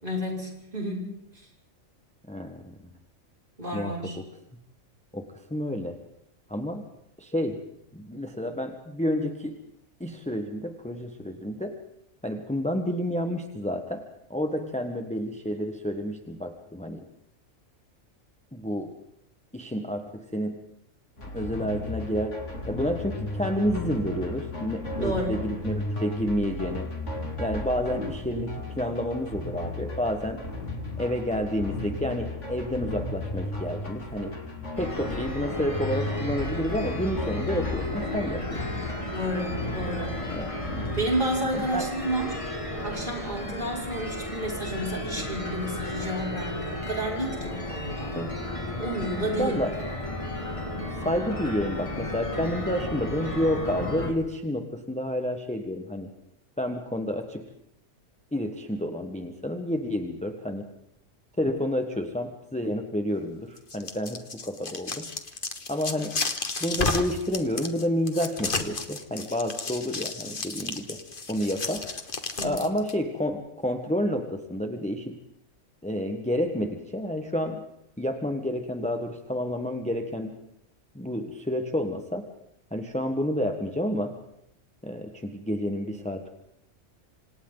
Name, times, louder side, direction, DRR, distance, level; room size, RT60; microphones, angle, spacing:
voice 1, 0.0-1.1 1.3-1.5 3.6-4.2 25.0-25.4 39.1-40.2 41.0-42.5 42.8-48.2 48.8-49.6 72.4-72.6, right 1 dB, 40° right, -2 dB, 6.3 m, -31 dB
voice 2, 2.3-2.9 3.7-3.9 5.1-6.0 6.5-6.8 7.2-7.6 7.9-9.6 10.0-11.8 12.2-14.0 14.3-17.0 18.5-18.9 19.5-20.6 21.3-22.4 22.7-26.9 27.4-30.4 31.0-34.4 34.8-39.1 40.2-40.6 41.5-41.8 48.1-48.3 49.4-49.7 51.0-56.1 56.6-57.5 58.3-60.7 61.4-65.1 65.7-66.2 66.6-71.0 71.3-71.8 72.4-75.2 75.8-77.6 78.0-80.3 80.9-82.3 82.7-84.1 84.8-86.3, equal, 5° left, 5 dB, 1.4 m, -30 dB
sound 1, 21.2-41.0, left 2 dB, 65° left, 3.5 m, -34 dB
sound 2, 34.8-54.1, left 1 dB, 25° left, 2.6 m, -34 dB
sound 3, 63.6-72.9, left 3 dB, 40° left, 1.7 m, -32 dB
27.5 x 26.5 x 4.0 m, 0.80 s
omnidirectional pair, 1.4 m